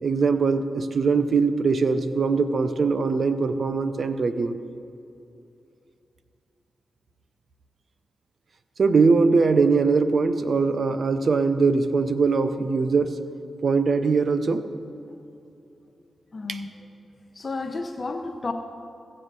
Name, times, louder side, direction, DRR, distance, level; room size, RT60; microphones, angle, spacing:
voice 1, 0.0-4.6 8.8-13.2 13.6-14.6 16.5-16.6, right 4 dB, 60° right, 11 dB, 0.7 m, -21 dB
voice 2, 16.3-16.7 17.3-18.5, left 3 dB, 45° left, 5 dB, 0.7 m, -31 dB
15.0 x 7.7 x 6.7 m, 2.7 s
cardioid pair, 50°, 0 cm